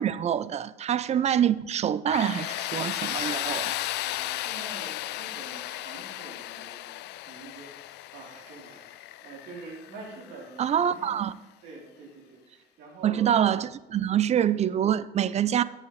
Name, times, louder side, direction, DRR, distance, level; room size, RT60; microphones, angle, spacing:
voice 1, 0.0-3.8 10.6-11.3 13.0-15.6, right 9 dB, 40° right, 0.5 m, -25 dB
Tools, 2.1-10.8, left 16 dB, 80° left, 0.4 m, -35 dB
voice 2, 4.0-11.3 11.6-13.5, right 3 dB, 80° right, 3.6 m, -46 dB
17.0 x 8.6 x 3.2 m
cardioid pair, 110°, 17 cm